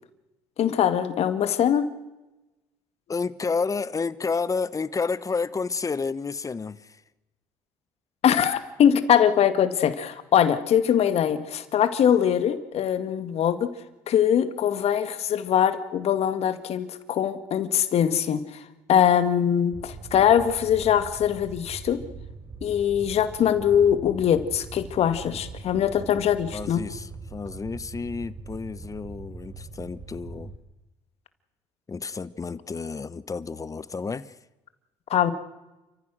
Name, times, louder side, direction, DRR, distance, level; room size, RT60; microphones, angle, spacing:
voice 1, 0.6-1.9 8.2-13.7 14.1-22.0 22.6-26.9 35.1-35.3, left 9 dB, 55° left, 2.0 m, -22 dB
voice 2, 3.1-7.0 26.5-30.5 31.9-34.3, left 4 dB, 25° left, 1.1 m, -30 dB
Fire, 19.7-30.6, right 4 dB, 45° right, 4.3 m, -41 dB
30.0 x 14.5 x 6.4 m
hypercardioid pair, 65°, 12 cm